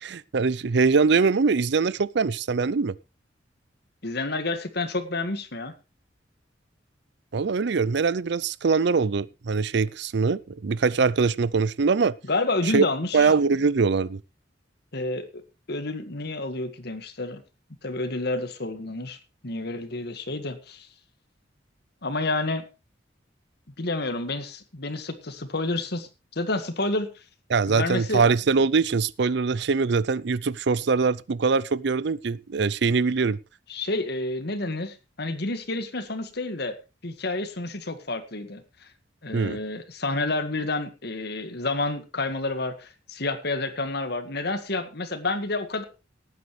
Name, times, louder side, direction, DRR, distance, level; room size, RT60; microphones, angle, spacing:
voice 1, 0.0-2.9 7.3-12.1 12.7-12.9 13.1-14.2 27.5-33.4 39.3-39.6, right 4 dB, 65° right, 0.5 m, -23 dB
voice 2, 4.0-5.7 12.3-13.3 14.9-15.3 15.7-17.4 17.8-19.2 19.4-20.9 22.0-22.6 23.8-27.1 27.7-28.2 33.7-36.8 37.0-38.9 39.2-45.8, left 2 dB, 60° left, 1.8 m, -29 dB
18.5 x 9.3 x 3.2 m
head